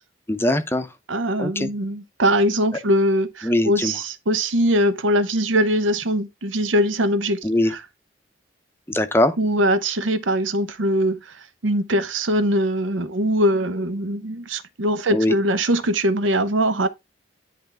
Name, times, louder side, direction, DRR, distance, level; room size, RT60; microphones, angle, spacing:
voice 1, 0.3-0.9 1.4-1.7 3.4-3.9 7.4-7.7 8.9-9.4 15.1-15.3, left 1 dB, 10° left, 0.6 m, -21 dB
voice 2, 1.1-7.8 9.4-11.4 11.6-16.9, equal, 90° right, 0.8 m, -22 dB
10.5 x 3.5 x 3.4 m
head